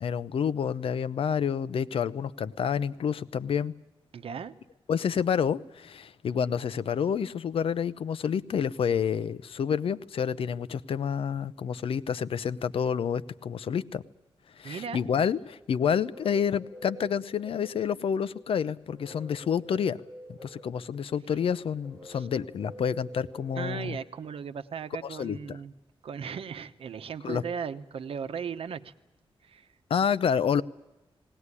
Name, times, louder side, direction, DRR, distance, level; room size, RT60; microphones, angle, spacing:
voice 1, 0.0-3.7 4.9-14.0 14.6-20.0 20.3-24.0 25.0-25.6 27.2-27.4 29.9-30.6, left 7 dB, 75° left, 16 dB, 0.7 m, -29 dB
voice 2, 4.1-4.5 14.6-15.0 22.1-22.3 23.5-25.7 26.0-28.9 29.4-29.7, right 7 dB, 80° right, 11 dB, 1.1 m, -37 dB
sound 1, 15.6-24.3, equal, ahead, 6.2 m, -48 dB
19.5 x 18.5 x 9.8 m, 1.0 s
wide cardioid pair, 130°, 10 cm